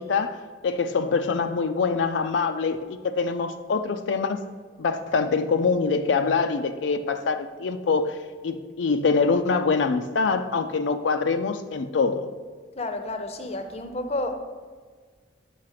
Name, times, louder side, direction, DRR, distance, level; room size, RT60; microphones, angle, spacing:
voice 1, 0.0-4.4 4.8-12.3, left 4 dB, 85° left, 8 dB, 0.4 m, -24 dB
voice 2, 12.8-14.4, left 2 dB, 35° left, 7 dB, 0.6 m, -30 dB
6.3 x 5.7 x 5.7 m, 1.5 s
head